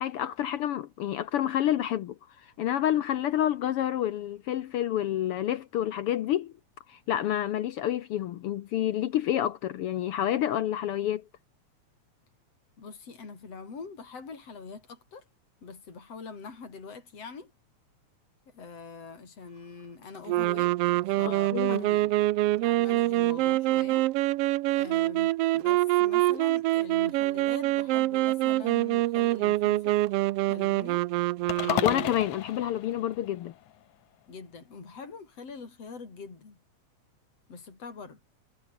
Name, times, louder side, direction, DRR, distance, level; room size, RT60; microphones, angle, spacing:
voice 1, 0.0-2.1 2.4-6.5 6.9-11.2 21.2-21.8 31.7-33.5, left 11 dB, 70° left, 1.4 m, -28 dB
voice 2, 12.8-15.3 15.6-17.5 18.5-20.8 21.1-22.1 22.6-24.1 24.7-30.0 30.5-31.1 31.6-32.2 34.3-36.6 37.5-38.2, left 5 dB, 55° left, 6.0 m, -43 dB
sound 1, 20.3-32.1, right 17 dB, 80° right, 1.3 m, -25 dB
sound 2, 31.5-33.8, left 13 dB, 90° left, 2.6 m, -34 dB
omnidirectional pair, 3.4 m